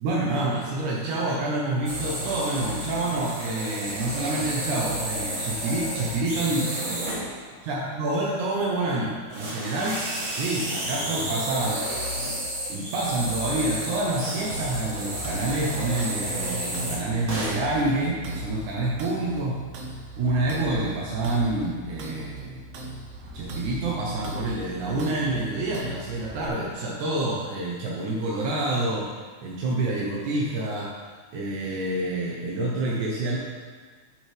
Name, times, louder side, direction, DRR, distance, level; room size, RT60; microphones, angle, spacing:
voice 1, 0.0-7.1 7.6-11.8 12.7-19.6 20.2-22.6 23.3-29.1 29.4-30.9 31.3-33.4, right 2 dB, 85° right, -4 dB, 2.5 m, -27 dB
sound 1, 1.9-7.3 8.6-8.8 9.3-17.7 18.3-18.6 19.2-19.3 19.7-19.8, right 1 dB, 45° right, 1.3 m, -31 dB
sound 2, 14.5-26.5, right 1 dB, 65° right, 2.0 m, -39 dB
10.0 x 8.0 x 3.4 m, 1.5 s
omnidirectional pair, 3.3 m